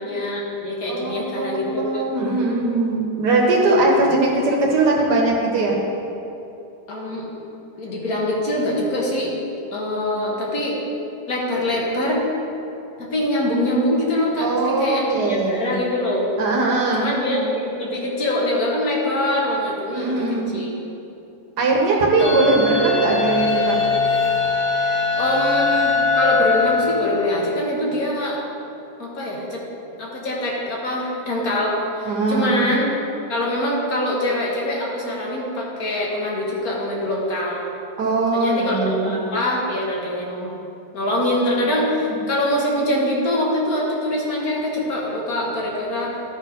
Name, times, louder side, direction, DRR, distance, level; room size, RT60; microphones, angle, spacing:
voice 1, 0.0-2.0 6.9-7.3 7.8-9.4 9.7-10.8 11.3-12.2 13.0-16.3 16.9-20.3 20.5-20.8 22.2-22.4 25.2-28.4 29.0-29.6 30.0-32.9 33.3-37.7 38.3-40.5 40.9-46.1, left 1 dB, 60° left, -3 dB, 1.9 m, -24 dB
voice 2, 0.9-5.8 14.4-15.7 16.4-17.1 19.9-20.5 21.6-23.8 32.1-32.7 38.0-39.1 41.9-42.2, right 2 dB, 80° right, -1 dB, 1.7 m, -20 dB
sound 1, 22.2-27.6, left 4 dB, 30° left, 0.6 m, -21 dB
12.0 x 4.4 x 5.1 m, 2.8 s
omnidirectional pair, 1.7 m